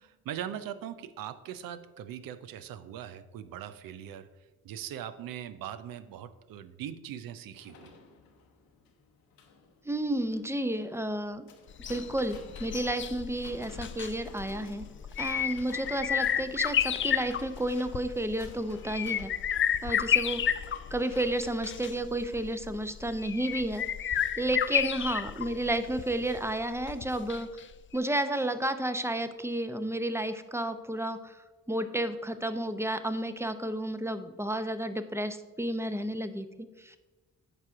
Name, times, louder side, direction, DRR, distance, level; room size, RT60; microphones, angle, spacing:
voice 1, 0.0-4.3 4.6-7.9 24.7-24.8, right 10 dB, 75° right, 13 dB, 0.5 m, -41 dB
sound 1, 7.6-21.3, left 5 dB, 85° left, 0.9 m, -53 dB
voice 2, 9.9-11.5 11.9-14.8 15.2-19.3 19.8-20.4 20.9-27.5 27.9-31.4 31.7-37.0, right 1 dB, 10° right, 10 dB, 0.6 m, -31 dB
sound 2, 11.7-27.6 27.9-28.0, left 9 dB, 35° left, 0.4 m, -32 dB
8.9 x 5.0 x 3.6 m, 1.2 s
supercardioid pair, 45°, 34 cm